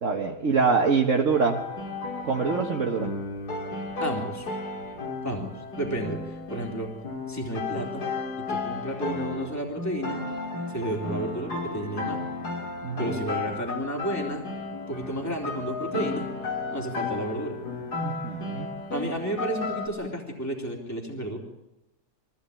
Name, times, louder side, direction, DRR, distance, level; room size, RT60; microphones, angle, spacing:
voice 1, 0.0-1.6 2.2-3.1 12.8-13.2 18.0-18.7, right 5 dB, 55° right, 1 dB, 1.7 m, -24 dB
sound 1, 1.3-19.9, left 3 dB, 90° left, 3.4 m, -34 dB
voice 2, 4.0-4.5 5.2-6.9 7.3-8.0 8.5-10.2 10.7-12.2 13.0-14.5 14.9-16.3 16.7-17.6 18.9-21.4, right 1 dB, 10° left, 0 dB, 3.3 m, -32 dB
23.5 x 16.0 x 8.4 m, 0.93 s
omnidirectional pair, 1.7 m